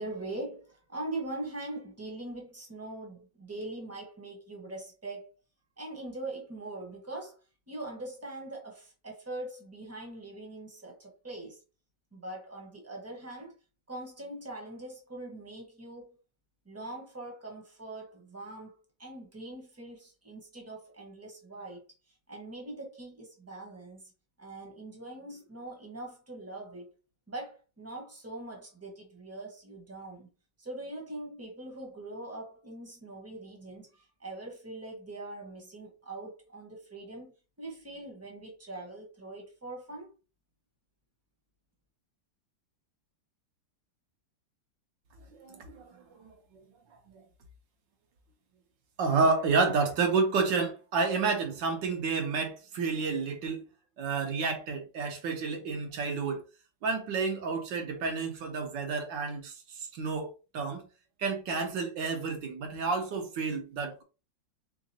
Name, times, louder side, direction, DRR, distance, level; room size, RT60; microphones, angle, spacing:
voice 1, 0.0-5.3 5.8-7.4 7.7-11.6 12.1-13.5 13.9-16.1 16.6-21.8 22.1-24.0 24.4-26.9 27.3-30.3 30.6-40.1, right 2 dB, 10° right, 0.8 m, -42 dB
voice 2, 45.4-45.9 46.2-46.3 49.0-53.6 54.0-56.4 56.8-59.5 59.9-60.8 61.2-64.0, right 4 dB, 75° right, 1.5 m, -30 dB
3.9 x 3.7 x 2.7 m
omnidirectional pair, 2.0 m